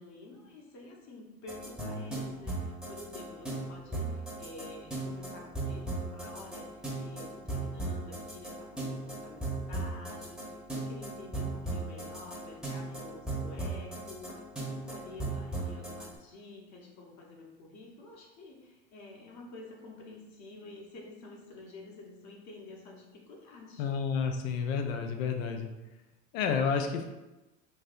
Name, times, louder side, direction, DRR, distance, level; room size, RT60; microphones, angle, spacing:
voice 1, 0.0-23.9, left 2 dB, 45° left, -1 dB, 1.0 m, -49 dB
sound 1, 1.5-16.1, right 2 dB, ahead, 0.9 m, -37 dB
voice 2, 23.8-25.7 26.3-27.0, left 6 dB, 70° left, 5 dB, 0.6 m, -30 dB
3.9 x 2.7 x 2.5 m, 1.0 s
hypercardioid pair, 90°, 41 cm